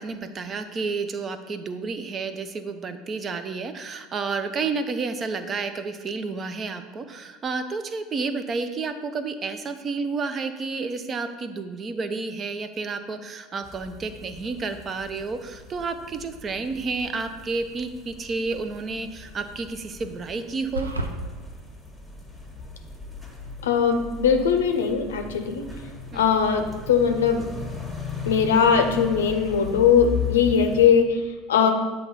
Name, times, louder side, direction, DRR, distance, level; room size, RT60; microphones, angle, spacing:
voice 1, 0.0-20.9 26.1-26.2, right 4 dB, 30° right, 9 dB, 0.5 m, -30 dB
sound 1, 13.6-30.9, left 4 dB, 5° right, 1.4 m, -37 dB
sound 2, 20.7-21.1, right 1 dB, 90° right, 0.4 m, -28 dB
voice 2, 23.6-25.6 26.1-27.4 28.3-31.2 31.5-31.7, left 7 dB, 75° left, 6 dB, 0.6 m, -20 dB
7.9 x 2.9 x 5.5 m, 1.3 s
figure-of-eight pair, 70°, 0 cm